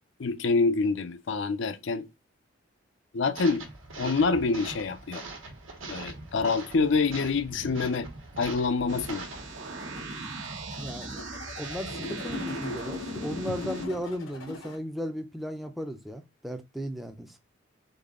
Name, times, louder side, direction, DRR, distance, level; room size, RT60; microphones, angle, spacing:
voice 1, 0.2-2.1 3.1-3.7 4.0-5.2 5.9-8.1 8.4-9.3, left 4 dB, 65° left, 0.5 m, -26 dB
sound 1, 3.3-9.4, right 3 dB, 85° right, 1.3 m, -42 dB
sound 2, 8.9-13.9, right 3 dB, 65° right, 0.9 m, -39 dB
sound 3, 9.5-14.8, left 3 dB, 90° left, 1.2 m, -39 dB
voice 2, 10.8-11.2 11.6-17.4, equal, ahead, 0.5 m, -35 dB
4.0 x 3.7 x 3.6 m
head